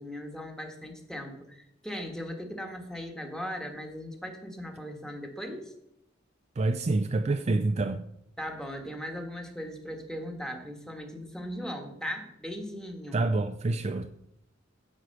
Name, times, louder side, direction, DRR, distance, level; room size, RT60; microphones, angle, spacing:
voice 1, 0.0-5.7 8.4-13.3, equal, 5° left, 1.4 m, -38 dB
voice 2, 6.6-8.0 13.1-14.1, right 2 dB, 35° right, 0.4 m, -27 dB
9.7 x 4.8 x 7.7 m
head